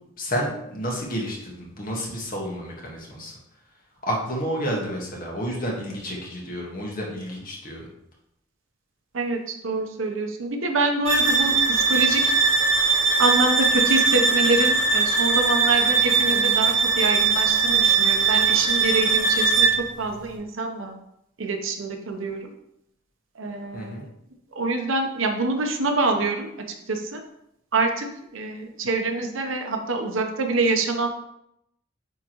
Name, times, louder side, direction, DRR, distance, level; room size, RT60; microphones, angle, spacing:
voice 1, 0.2-3.3 4.0-7.9 23.7-24.0, equal, 45° left, -2 dB, 1.6 m, -30 dB
voice 2, 9.1-12.3 13.2-20.9 21.4-22.5 23.4-24.0 24.5-26.5 26.9-27.2 27.7-31.1, right 3 dB, 75° right, 4 dB, 0.9 m, -26 dB
sound 1, 11.1-19.9, right 4 dB, 30° right, 2.5 m, -20 dB
9.2 x 3.6 x 3.1 m, 0.79 s
head